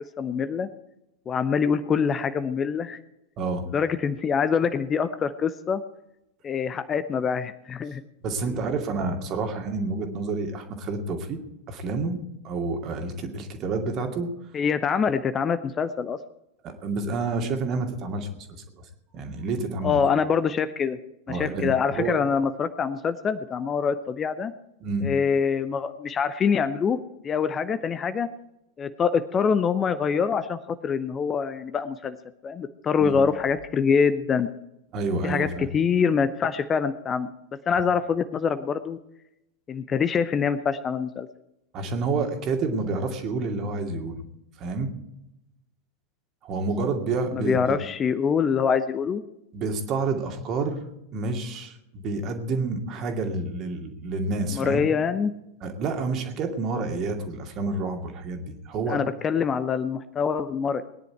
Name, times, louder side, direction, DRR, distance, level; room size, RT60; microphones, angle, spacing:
voice 1, 0.2-0.7 1.3-3.0 3.7-5.8 6.4-8.0 14.5-16.2 19.8-21.0 21.3-24.5 25.0-27.0 27.2-28.3 28.8-32.2 32.4-34.5 35.2-37.3 37.7-39.0 39.7-41.3 47.3-49.2 54.5-55.3 58.9-60.8, left 6 dB, 25° left, 12 dB, 0.7 m, -25 dB
voice 2, 3.4-3.7 8.2-11.4 11.7-14.3 16.6-18.6 19.1-20.0 21.3-22.2 24.8-25.1 33.0-33.2 34.9-35.7 41.7-44.2 44.6-44.9 46.4-47.8 49.5-54.8 55.6-59.0, right 3 dB, 35° right, 5 dB, 2.3 m, -29 dB
20.5 x 10.5 x 4.7 m, 0.86 s
figure-of-eight pair, 90°, 0 cm